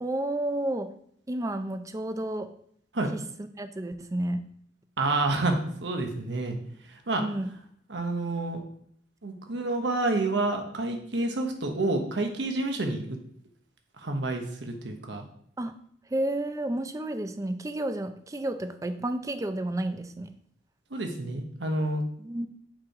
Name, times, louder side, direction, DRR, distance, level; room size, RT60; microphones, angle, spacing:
voice 1, 0.0-0.9 1.3-2.5 3.1-4.4 7.1-7.5 15.6-15.7 16.1-20.3 22.2-22.5, right 1 dB, 20° right, 9 dB, 0.4 m, -31 dB
voice 2, 5.0-6.6 6.9-7.2 7.9-8.6 9.2-13.0 14.0-15.3 20.9-22.0, right 2 dB, 80° right, 4 dB, 1.1 m, -29 dB
6.1 x 4.4 x 4.9 m, 0.64 s
head